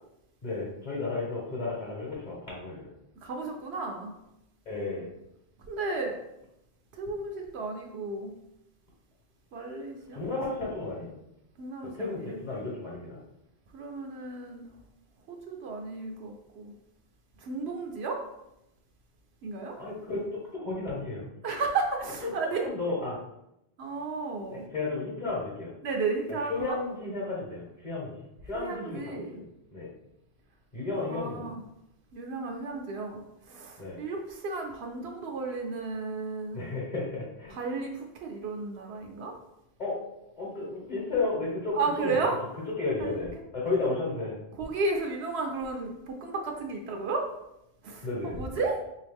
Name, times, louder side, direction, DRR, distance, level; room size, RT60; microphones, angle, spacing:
voice 1, 0.4-2.9 4.7-5.1 10.1-11.1 11.8-13.2 19.8-21.2 22.2-23.2 24.5-25.7 26.5-28.1 28.5-29.9 30.7-31.5 33.8-34.0 36.5-37.6 39.8-42.3 42.8-44.3 48.0-48.4, left 3 dB, 45° left, -4 dB, 1.0 m, -33 dB
voice 2, 3.2-4.1 5.7-6.2 7.0-8.3 9.5-10.2 11.6-12.4 13.7-14.7 15.3-16.7 17.4-18.2 19.4-19.8 21.4-22.6 23.8-24.7 25.8-26.8 28.5-29.4 31.0-31.6 32.1-33.2 33.5-36.6 37.5-39.3 41.7-42.4 43.0-43.1 44.6-47.3 47.8-48.1 48.3-48.8, right 3 dB, 85° right, 2 dB, 0.9 m, -33 dB
3.7 x 2.7 x 3.4 m, 0.84 s
omnidirectional pair, 1.1 m